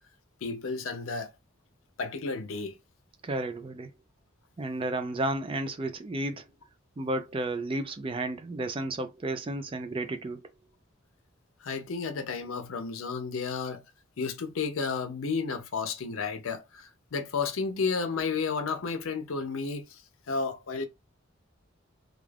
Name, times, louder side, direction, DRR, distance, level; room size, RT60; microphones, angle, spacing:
voice 1, 0.4-1.3 2.0-2.8 11.6-13.8 14.2-20.0 20.3-20.9, left 4 dB, 75° left, 0.6 m, -32 dB
voice 2, 3.2-3.9 4.6-6.5 7.0-10.5, right 2 dB, 25° right, 0.3 m, -32 dB
2.3 x 2.3 x 3.3 m
head